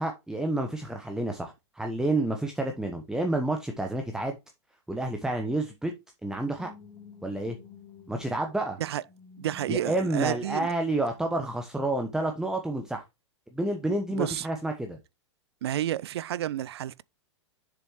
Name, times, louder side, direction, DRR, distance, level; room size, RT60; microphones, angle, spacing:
voice 1, 0.0-4.4 4.9-5.9 6.2-6.7 7.2-7.6 8.1-8.8 9.7-13.0 13.5-15.0, right 2 dB, 5° right, 1.1 m, -29 dB
sound 1, 6.6-10.5 11.1-11.3, left 5 dB, 25° left, 3.3 m, -51 dB
voice 2, 9.4-10.7 14.1-14.5 15.6-17.0, right 12 dB, 60° right, 0.4 m, -30 dB
7.3 x 6.8 x 3.1 m
figure-of-eight pair, 105°, 15 cm